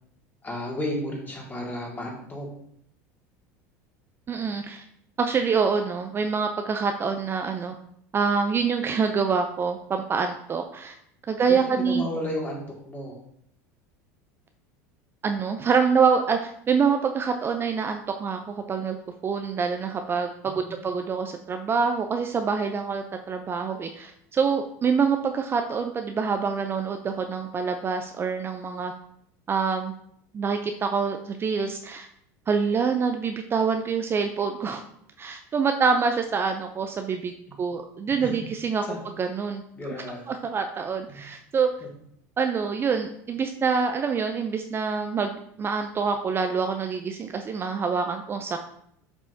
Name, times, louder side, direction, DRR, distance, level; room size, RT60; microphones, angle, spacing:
voice 1, 0.4-2.5 11.4-13.2 20.5-20.9 38.2-38.4 38.9-39.0 39.7-40.3 41.8-41.9, left 1 dB, 20° left, -1 dB, 2.1 m, -33 dB
voice 2, 4.3-4.8 5.2-7.7 8.1-11.0 11.3-12.1 15.2-19.0 19.2-28.9 29.5-29.9 30.3-32.1 32.5-34.8 35.2-37.3 37.6-38.8 39.2-39.6 40.3-41.7 42.4-48.6, right 5 dB, 25° right, 6 dB, 0.5 m, -26 dB
7.3 x 5.4 x 2.7 m, 0.70 s
supercardioid pair, 100°, 8 cm